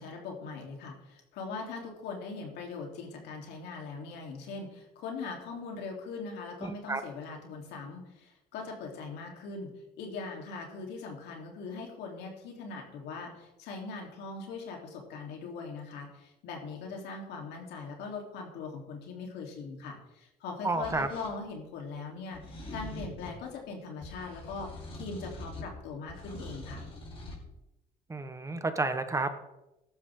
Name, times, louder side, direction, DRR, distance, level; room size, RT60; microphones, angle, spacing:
voice 1, 0.0-9.7 10.0-26.8, left 4 dB, 85° left, 1 dB, 3.5 m, -41 dB
voice 2, 6.6-7.0 20.6-21.1 28.1-29.3, right 3 dB, 20° right, 9 dB, 1.2 m, -31 dB
sound 1, 20.8-21.3 22.3-23.4 24.0-25.8 26.1-27.4, left 1 dB, 35° left, 4.9 m, -43 dB
15.5 x 12.0 x 3.8 m, 0.94 s
cardioid pair, 110°, 17 cm